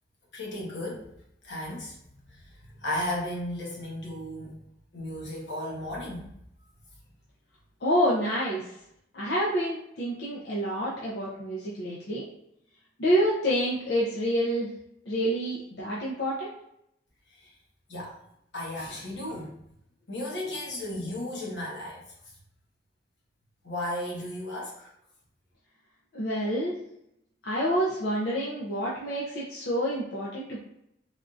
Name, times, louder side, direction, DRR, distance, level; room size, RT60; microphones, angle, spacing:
voice 1, 0.3-1.1 1.4-1.9 2.3-2.4 2.8-4.6 4.9-6.3 17.3-17.5 17.9-18.2 18.5-19.6 20.1-22.0 23.6-24.9, left 1 dB, 80° left, -3 dB, 1.0 m, -34 dB
voice 2, 7.8-8.7 9.1-12.2 13.0-14.7 15.1-16.5 26.1-26.8 27.4-30.6, equal, 65° left, -5 dB, 0.6 m, -28 dB
3.5 x 2.5 x 2.4 m, 0.77 s
head